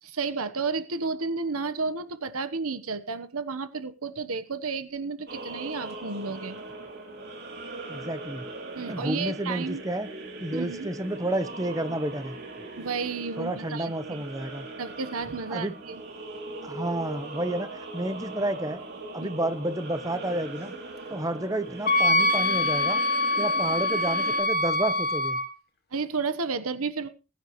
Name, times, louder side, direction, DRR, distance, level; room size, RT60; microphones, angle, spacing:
voice 1, 0.0-6.6 8.7-9.8 10.5-10.9 12.8-14.2 14.8-16.0 19.2-19.3 25.9-27.1, right 4 dB, 75° right, 12 dB, 1.0 m, -32 dB
sound 1, 5.3-24.4, right 2 dB, 50° right, 2.9 m, -40 dB
voice 2, 7.9-8.4 8.9-10.1 10.4-12.4 13.4-14.7 15.5-15.8 16.6-18.8 19.1-20.7 21.1-23.0 23.4-25.4, right 1 dB, 15° right, 12 dB, 0.9 m, -30 dB
Wind instrument woodwind instrument, 21.9-25.5, left 2 dB, 45° left, 1.1 m, -24 dB
20.0 x 9.5 x 3.1 m, 0.32 s
head